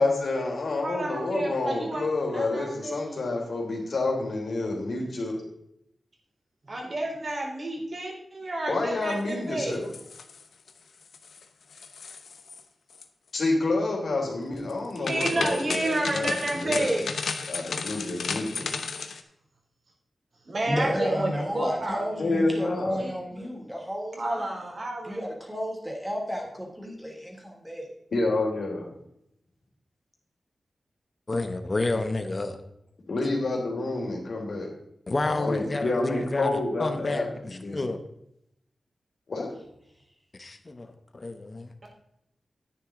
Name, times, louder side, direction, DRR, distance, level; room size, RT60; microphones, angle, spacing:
voice 1, 0.0-5.4 8.7-9.9 13.3-16.9 17.5-18.7 22.2-23.0 28.1-28.9 33.1-34.7 35.3-37.3 37.6-37.8 39.3-39.5, left 2 dB, 65° left, 0 dB, 3.2 m, -28 dB
voice 2, 0.8-3.2 6.6-9.8 15.0-17.0 20.4-22.1 22.6-23.5 24.2-25.3, right 1 dB, 50° right, 0 dB, 3.1 m, -30 dB
sound 1, 9.7-10.7 11.0-11.4 11.7-12.6 12.9-13.0 14.7-19.2, left 5 dB, 85° left, 0.9 m, -34 dB
voice 3, 20.6-24.6 25.0-27.9, equal, 5° right, 0 dB, 3.0 m, -32 dB
voice 4, 31.3-32.6 35.1-38.0 40.4-41.7, left 2 dB, 35° left, 8 dB, 1.1 m, -30 dB
10.0 x 9.4 x 3.8 m, 0.77 s
wide cardioid pair, 100°, 0 cm